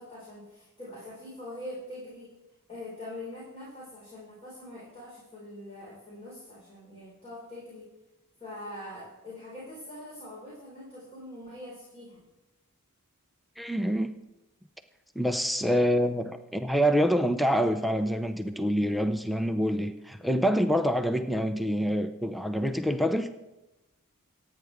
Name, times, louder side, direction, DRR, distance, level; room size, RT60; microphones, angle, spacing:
voice 1, 0.0-2.3 2.7-7.9 8.4-12.2, left 1 dB, 25° left, -8 dB, 5.1 m, -43 dB
voice 2, 13.6-14.1 15.2-23.3, equal, ahead, 7 dB, 0.5 m, -26 dB
26.0 x 9.3 x 3.6 m, 1.0 s
head